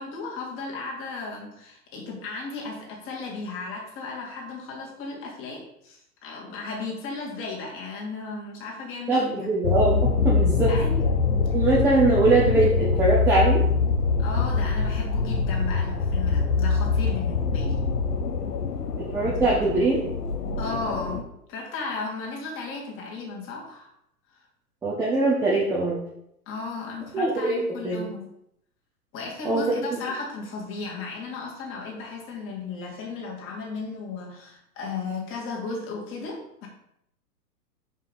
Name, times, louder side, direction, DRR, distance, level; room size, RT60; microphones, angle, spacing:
voice 1, 0.0-9.6 10.7-11.0 14.2-17.8 20.6-23.9 26.5-28.2 29.1-36.7, left 4 dB, 25° left, -1 dB, 1.9 m, -35 dB
voice 2, 9.1-10.7 11.5-13.6 19.0-20.0 24.8-26.0 27.1-28.0 29.4-29.6 29.9-30.0, right 3 dB, 5° right, -6 dB, 0.6 m, -22 dB
sound 1, 9.6-21.2, left 4 dB, 70° left, 1.0 m, -24 dB
5.5 x 4.9 x 5.3 m, 0.75 s
figure-of-eight pair, 120°, 49 cm